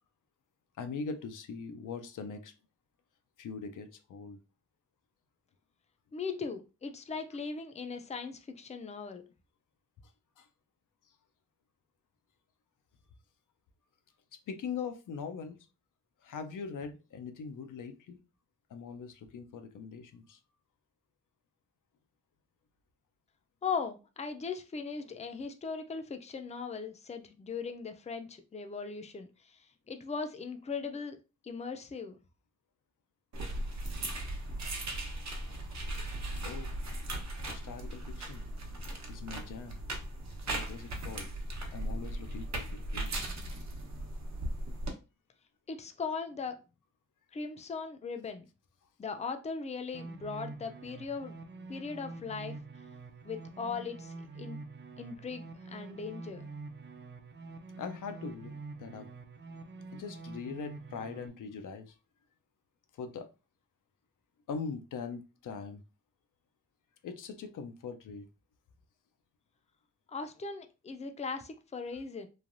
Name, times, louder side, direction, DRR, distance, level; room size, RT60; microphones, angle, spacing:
voice 1, 0.8-2.5 3.4-4.4 10.4-10.5 14.3-15.6 16.2-18.2 18.7-20.4 36.4-36.7 37.5-38.4 39.1-39.8 40.5-41.3 41.7-43.3 57.8-58.5 58.8-59.1 59.9-62.0 62.9-63.3 64.5-65.8 67.0-68.2, left 5 dB, 85° left, 8 dB, 0.5 m, -41 dB
voice 2, 6.1-9.2 23.6-29.6 29.9-31.2 31.4-32.2 45.7-46.6 47.3-48.5 49.0-51.4 51.7-52.6 53.2-54.6 55.0-56.5 70.1-72.3, left 5 dB, 20° left, 7 dB, 0.4 m, -39 dB
sound 1, 33.3-44.9, right 1 dB, 60° right, 0.9 m, -38 dB
sound 2, 49.9-61.3, right 3 dB, 35° right, 0.4 m, -46 dB
3.2 x 2.2 x 2.5 m, 0.30 s
cardioid pair, 80°, 30 cm